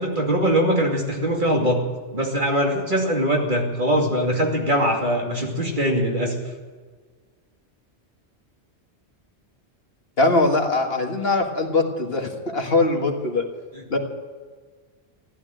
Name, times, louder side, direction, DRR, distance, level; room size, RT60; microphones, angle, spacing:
voice 1, 0.0-1.8 2.1-6.4 13.7-14.0, equal, 45° right, 0 dB, 2.7 m, -22 dB
voice 2, 10.2-13.5 13.9-14.0, left 2 dB, 60° left, 3 dB, 2.0 m, -21 dB
15.0 x 11.0 x 7.8 m, 1.5 s
omnidirectional pair, 1.1 m